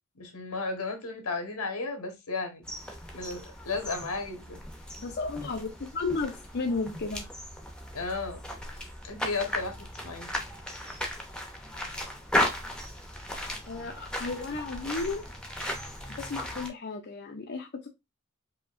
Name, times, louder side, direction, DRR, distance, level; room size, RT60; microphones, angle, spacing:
voice 1, 0.2-2.6 3.1-4.6 7.9-8.4 8.7-8.8 9.1-10.3, left 3 dB, 90° left, 1.3 m, -34 dB
sound 1, 2.6-16.7, left 1 dB, 5° left, 0.7 m, -36 dB
voice 2, 5.0-7.3 13.7-15.2 16.1-17.9, left 3 dB, 50° left, 0.5 m, -33 dB
4.9 x 2.8 x 2.5 m
head